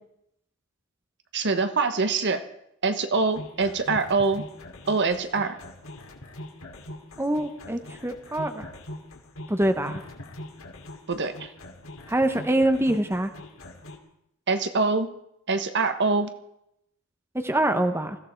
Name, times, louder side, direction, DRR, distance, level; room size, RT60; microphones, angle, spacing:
voice 1, 1.3-2.4 2.8-4.4 4.9-5.6 11.1-11.5 14.5-15.1 15.5-16.3, right 4 dB, 55° right, 9 dB, 1.3 m, -24 dB
sound 1, 3.4-14.0, left 1 dB, 70° left, 2.6 m, -42 dB
voice 2, 7.2-8.7 9.5-10.0 12.1-13.3 17.4-18.2, right 1 dB, 10° right, 8 dB, 0.9 m, -24 dB
21.0 x 15.0 x 4.5 m, 0.78 s
head